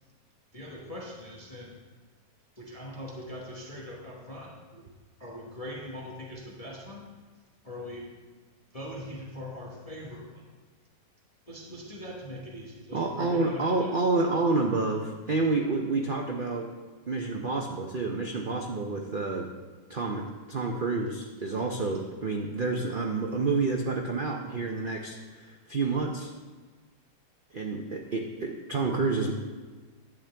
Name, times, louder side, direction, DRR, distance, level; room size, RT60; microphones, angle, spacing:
voice 1, 0.5-1.8 2.6-4.9 5.2-7.1 7.6-8.1 8.7-10.4 11.5-13.9, left 1 dB, 20° left, -4 dB, 1.2 m, -41 dB
voice 2, 12.9-16.7 17.1-19.5 19.9-26.3 27.5-29.3, right 3 dB, 70° right, 0 dB, 0.5 m, -29 dB
11.0 x 8.9 x 3.4 m, 1.4 s
omnidirectional pair, 2.0 m